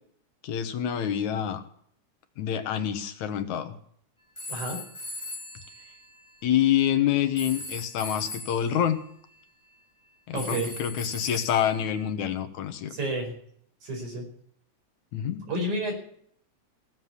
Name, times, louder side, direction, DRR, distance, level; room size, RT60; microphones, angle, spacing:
voice 1, 0.4-1.6 2.4-3.8 6.4-9.0 10.3-12.9 15.1-15.4, left 10 dB, 80° left, 9 dB, 2.7 m, -27 dB
sound 1, 4.4-6.6 7.4-8.8 10.4-12.1, left 2 dB, 15° left, 1.3 m, -39 dB
voice 2, 4.5-4.8 10.3-10.7 12.9-13.3 13.8-14.2 15.4-15.9, right 1 dB, 85° right, 1 dB, 6.3 m, -30 dB
16.5 x 7.6 x 9.6 m, 0.65 s
omnidirectional pair, 3.3 m